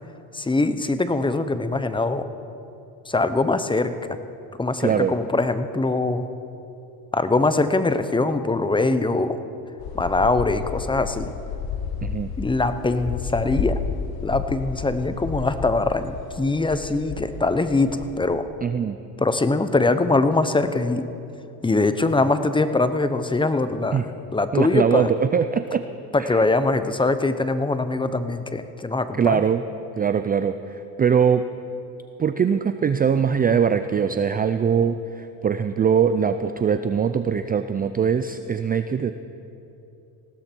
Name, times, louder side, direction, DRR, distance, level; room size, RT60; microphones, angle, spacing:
voice 1, 0.3-2.2 3.1-3.9 4.6-6.2 7.1-9.4 9.9-11.3 12.4-13.8 14.2-17.9 18.2-18.5 19.2-21.0 21.6-25.1 26.1-29.4, left 3 dB, 10° left, 11 dB, 0.8 m, -22 dB
voice 2, 4.8-5.1 12.0-12.3 18.6-19.0 23.9-24.0 24.5-25.8 26.2-26.4 29.2-29.6 30.0-31.4 32.2-39.1, right 7 dB, 20° right, 10 dB, 0.5 m, -22 dB
sound 1, 9.8-18.2, left 6 dB, 55° left, 1.4 m, -32 dB
19.5 x 16.0 x 4.6 m, 2.8 s
supercardioid pair, 95°, 43 cm